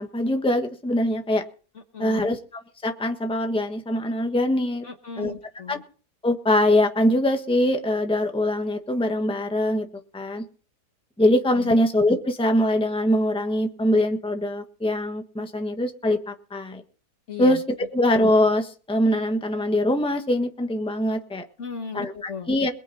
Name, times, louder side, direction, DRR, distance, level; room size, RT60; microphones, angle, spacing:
voice 1, 0.0-1.4 2.0-2.4 2.8-4.8 5.2-5.3 5.7-5.8 6.2-9.9 10.1-10.4 11.2-16.8 17.4-17.6 17.9-21.4 21.9-22.7, left 1 dB, 5° left, 5 dB, 1.3 m, -23 dB
voice 2, 1.9-2.3 4.8-5.8 11.5-11.7 17.3-17.6 21.6-22.5, left 6 dB, 50° left, 6 dB, 1.5 m, -36 dB
22.0 x 9.1 x 4.2 m, 0.39 s
omnidirectional pair, 1.7 m